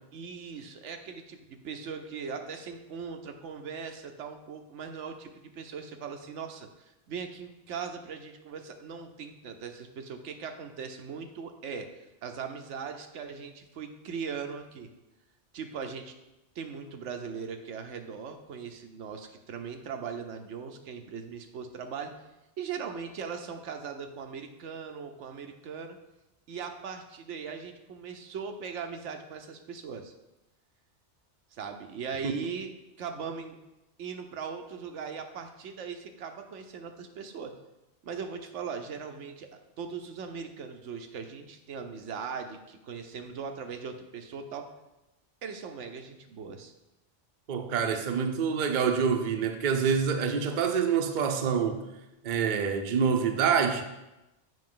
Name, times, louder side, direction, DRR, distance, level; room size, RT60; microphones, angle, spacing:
voice 1, 0.1-11.9 12.2-14.9 15.5-16.1 16.5-22.2 22.6-26.0 26.5-30.1 31.5-32.7 33.0-33.6 34.0-37.5 38.0-44.7 45.4-46.7 47.9-48.2, right 6 dB, 85° right, 1.1 m, -39 dB
voice 2, 47.5-51.9 52.2-53.8, right 6 dB, 50° right, 0.7 m, -26 dB
7.7 x 5.6 x 3.8 m
omnidirectional pair, 1.2 m